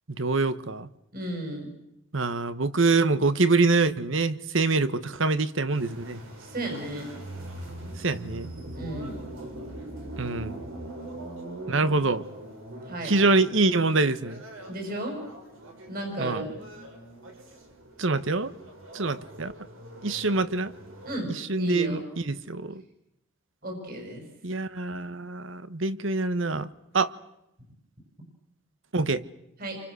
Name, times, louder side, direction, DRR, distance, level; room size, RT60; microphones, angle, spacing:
voice 1, 0.2-0.9 2.1-6.2 8.0-8.5 10.2-10.6 11.7-12.2 13.0-14.4 16.2-16.5 18.0-18.5 18.9-19.5 20.0-20.7 21.3-22.8 24.4-26.7 26.9-27.1 28.9-29.2, right 3 dB, 70° right, 1.3 m, -25 dB
voice 2, 1.1-1.7 6.4-7.1 8.7-9.2 12.9-13.1 14.7-15.2 15.9-16.5 21.0-22.1 23.6-24.2 29.6-29.8, right 1 dB, 45° right, 6.2 m, -34 dB
sound 1, 5.7-21.2, right 1 dB, 90° right, 6.2 m, -42 dB
29.5 x 25.0 x 6.4 m
head